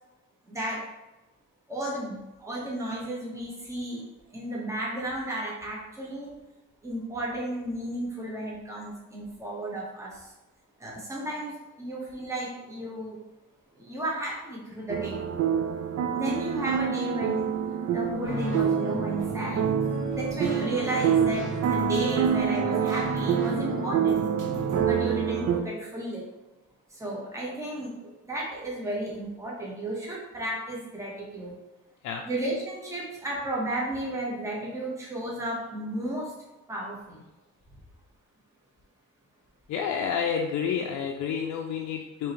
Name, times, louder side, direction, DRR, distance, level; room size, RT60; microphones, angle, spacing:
voice 1, 0.5-0.9 1.7-4.0 4.3-6.3 6.8-10.3 10.8-13.2 13.8-15.2 16.1-17.5 17.9-19.7 20.1-24.2 24.8-26.3 26.9-31.5 32.2-36.4 36.7-37.2, right 1 dB, 10° right, -4 dB, 1.1 m, -33 dB
sound 1, 14.9-25.6, right 8 dB, 55° right, 0.5 m, -27 dB
sound 2, 18.2-24.8, right 1 dB, 85° right, 1.4 m, -33 dB
voice 2, 39.7-42.3, left 7 dB, 70° left, 2 dB, 0.5 m, -29 dB
4.7 x 3.0 x 3.0 m, 1.0 s
cardioid pair, 90°, 30 cm